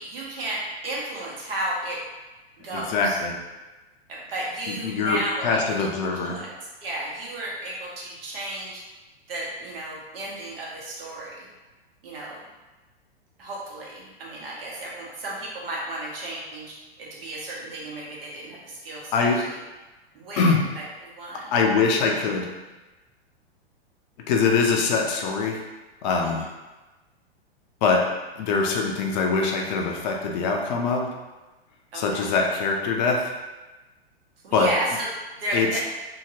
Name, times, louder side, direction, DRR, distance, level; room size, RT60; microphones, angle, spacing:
voice 1, 0.0-2.0 2.6-3.2 4.1-6.5 6.8-8.8 9.3-11.5 12.0-12.4 13.4-19.6 20.1-21.5 26.2-26.4 31.9-32.3 34.4-35.8, right 1 dB, 65° right, -4 dB, 1.1 m, -33 dB
voice 2, 2.7-3.4 4.7-6.4 19.1-19.4 20.4-20.7 21.5-22.5 24.3-25.6 26.0-26.4 27.8-28.0 28.4-31.1 31.9-33.3 34.5-34.7 35.5-35.8, left 4 dB, 45° left, 1 dB, 0.5 m, -23 dB
2.8 x 2.8 x 2.7 m, 1.1 s
hypercardioid pair, 110°, 31 cm